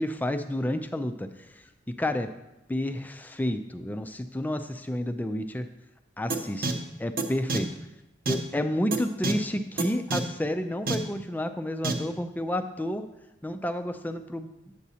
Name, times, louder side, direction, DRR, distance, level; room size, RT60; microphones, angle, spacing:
voice 1, 0.0-2.3 2.7-5.7 6.2-7.7 8.3-13.1 13.4-14.5, left 1 dB, 10° left, 8 dB, 0.3 m, -30 dB
sound 1, 6.3-6.4 6.6-6.7 7.2-7.3 7.5-7.6 8.3-8.4 8.9-9.0 9.2-9.3 9.8-9.9 10.1-10.2 10.9-11.0 11.8-11.9, right 3 dB, 50° right, 0.7 m, -26 dB
8.3 x 8.0 x 2.8 m, 0.92 s
head